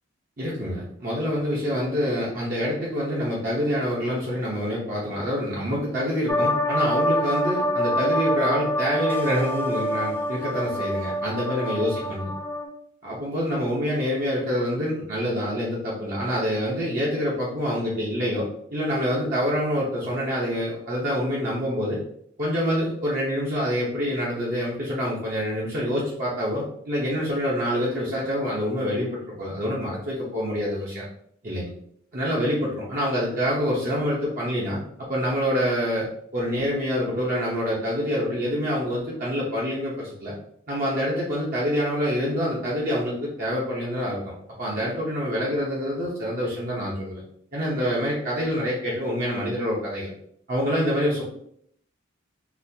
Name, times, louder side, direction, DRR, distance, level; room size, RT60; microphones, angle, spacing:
voice 1, 0.4-12.3 13.0-22.0 22.4-31.0 31.4-31.7 32.1-34.8 35.1-36.1 36.3-40.3 40.7-47.2 47.5-50.1 50.5-51.2, equal, 45° right, -6 dB, 0.8 m, -26 dB
sound 1, 6.3-12.7, equal, 10° left, 0.4 m, -26 dB
4.0 x 2.4 x 2.7 m, 0.68 s
head